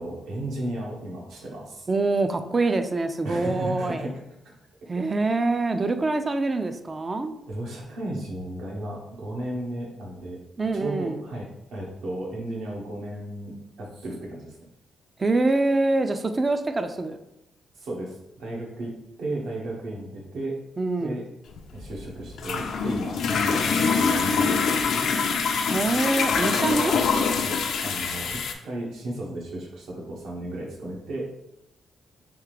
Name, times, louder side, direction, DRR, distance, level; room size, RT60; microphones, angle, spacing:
voice 1, 0.0-1.9 3.2-4.5 7.5-10.4 10.7-14.6 17.8-20.6 21.0-21.2 21.7-23.2 23.4-25.2 27.4-31.3, right 1 dB, 80° right, -2 dB, 1.1 m, -34 dB
voice 2, 1.9-4.1 4.9-7.3 10.6-11.2 15.2-17.2 20.8-21.2 25.7-27.0, right 2 dB, 25° right, 8 dB, 0.3 m, -25 dB
sound 1, 21.5-28.5, left 5 dB, 70° left, 0.4 m, -24 dB
3.5 x 3.2 x 3.2 m, 0.85 s
cardioid pair, 115°, 0 cm